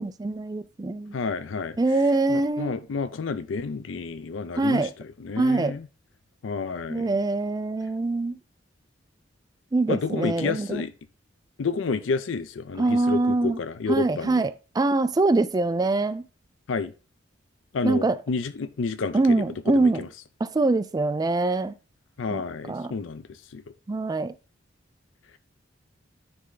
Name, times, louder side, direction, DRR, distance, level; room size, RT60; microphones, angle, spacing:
voice 1, 0.0-1.1 1.8-2.7 4.6-4.9 5.4-5.8 6.9-8.3 9.7-10.8 12.8-13.6 13.9-16.2 17.8-18.2 19.1-20.0 20.4-21.7 22.3-22.4 22.7-22.9 23.9-24.3, right 2 dB, 20° right, 0.3 m, -24 dB
voice 2, 1.1-1.8 2.3-5.9 6.4-7.1 9.9-10.9 11.6-14.4 16.7-16.9 17.7-20.1 22.2-23.2 23.5-23.6, left 4 dB, 90° left, 0.5 m, -30 dB
9.6 x 3.3 x 3.8 m
head